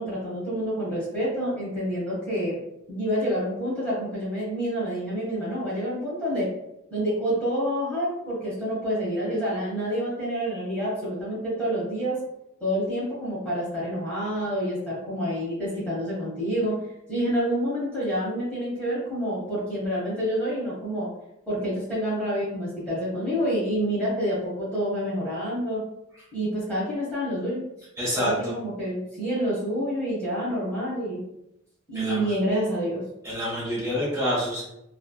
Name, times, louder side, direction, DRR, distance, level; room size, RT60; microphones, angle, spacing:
voice 1, 0.0-2.6 2.9-6.5 6.9-12.2 12.6-16.8 17.1-21.1 21.5-25.8 26.3-27.6 28.2-31.2 31.9-33.0, equal, 5° left, -10 dB, 1.1 m, -28 dB
voice 2, 28.0-28.5 31.9-32.3 33.2-34.7, equal, 15° right, -8 dB, 1.4 m, -27 dB
3.3 x 2.5 x 2.3 m, 0.83 s
head